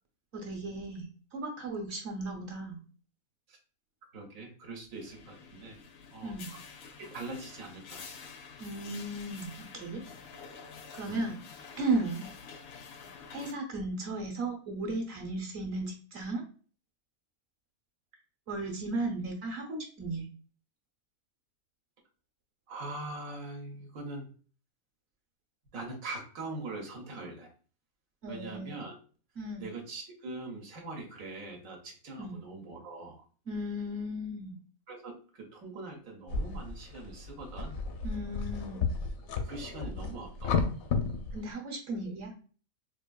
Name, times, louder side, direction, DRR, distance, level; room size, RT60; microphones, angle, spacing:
voice 1, 0.3-1.1 1.3-2.8 6.2-6.5 8.6-10.0 10.9-11.4 11.8-12.3 13.3-16.4 18.5-20.2 28.2-28.7 29.3-29.7 32.2-32.4 33.5-34.6 38.0-38.9 41.3-42.3, right 2 dB, 55° right, 1 dB, 1.1 m, -35 dB
voice 2, 4.1-5.8 6.1-6.6 7.0-8.2 11.0-11.3 22.7-24.3 25.7-27.5 28.3-29.0 29.6-33.2 34.9-37.8 39.4-40.7 41.9-42.2, right 2 dB, 75° right, 1 dB, 1.2 m, -42 dB
sound 1, 4.9-13.5, left 5 dB, 65° left, 0.6 m, -49 dB
sound 2, 36.3-41.5, left 4 dB, 80° left, 1.0 m, -33 dB
4.4 x 2.5 x 2.2 m, 0.39 s
omnidirectional pair, 1.5 m